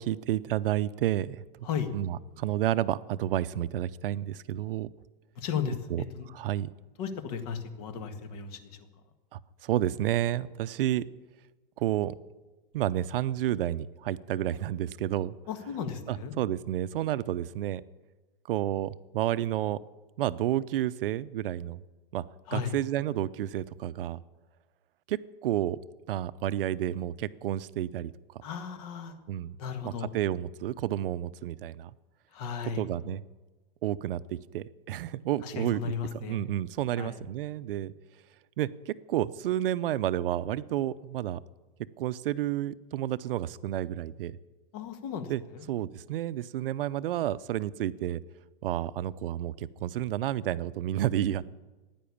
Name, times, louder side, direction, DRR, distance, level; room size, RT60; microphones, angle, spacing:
voice 1, 0.0-1.7 1.9-4.9 5.9-6.0 6.3-6.7 9.3-11.0 11.8-12.1 12.7-15.4 16.1-17.8 18.5-19.8 20.2-21.8 22.1-22.2 22.5-24.2 25.1-25.8 26.1-28.1 29.3-29.6 29.8-31.9 32.8-33.2 33.8-35.9 36.2-37.9 38.6-41.4 42.0-44.4 45.3-45.4 45.7-48.2 48.6-51.5, right 12 dB, 65° right, 16 dB, 0.6 m, -30 dB
voice 2, 5.4-6.3 7.0-8.9 15.5-16.4 22.5-22.7 28.4-29.2 29.6-30.2 32.3-32.9 35.4-36.5 37.0-37.2 44.7-45.7, left 7 dB, 40° left, 8 dB, 1.7 m, -35 dB
15.5 x 10.0 x 8.5 m, 1.2 s
supercardioid pair, 165°, 30 cm